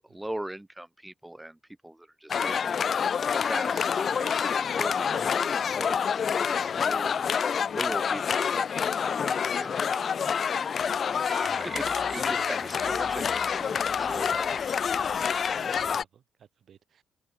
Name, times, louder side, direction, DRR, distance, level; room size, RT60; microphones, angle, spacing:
voice 1, 0.0-2.8 3.3-11.1 11.6-14.4, right 1 dB, 10° right, 1.9 m, -41 dB
sound 1, 2.3-16.0, left 7 dB, 50° left, 0.6 m, -27 dB
Female singing, 5.3-11.5, right 13 dB, 85° right, 4.1 m, -61 dB
voice 2, 6.5-8.1 10.8-11.3 12.2-12.5 13.0-14.6 15.5-17.0, right 8 dB, 60° right, 7.3 m, -56 dB
sound 2, 10.8-16.0, right 4 dB, 30° right, 5.8 m, -44 dB
cardioid pair, 90°, 0 cm